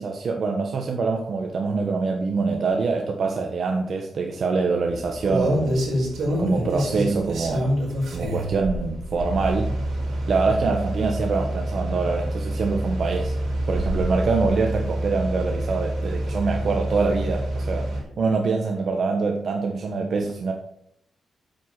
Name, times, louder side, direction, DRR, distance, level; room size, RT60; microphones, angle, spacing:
voice 1, 0.0-5.8 6.4-7.7 8.1-9.7 10.3-13.3 13.7-17.8 18.2-20.5, right 4 dB, 50° right, 2 dB, 1.1 m, -24 dB
sound 1, 4.9-18.0, right 1 dB, 70° right, 4.9 m, -27 dB
8.9 x 7.9 x 6.0 m, 0.72 s
wide cardioid pair, 170°, 0 cm